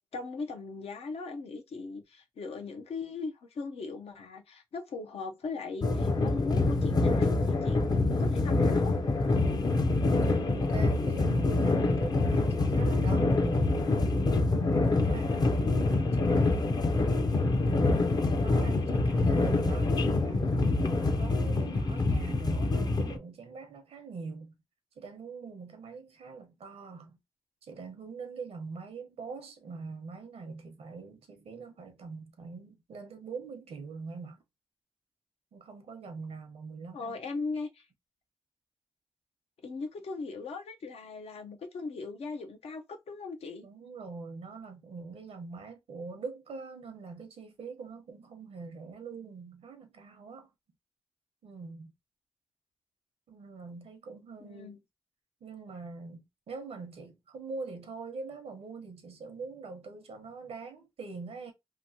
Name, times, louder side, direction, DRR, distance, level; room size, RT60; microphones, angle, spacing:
voice 1, 0.1-8.9 36.9-37.9 39.6-43.7 54.4-54.8, left 4 dB, 85° left, 0.6 m, -39 dB
sound 1, 5.8-23.2, left 2 dB, 40° left, 0.5 m, -26 dB
voice 2, 10.3-24.6 25.0-27.2 27.6-34.4 35.5-37.2 43.6-50.5 51.4-51.9 53.3-54.8 55.4-61.5, right 4 dB, 90° right, 0.8 m, -43 dB
2.9 x 2.6 x 2.7 m
cardioid pair, 60°, 10 cm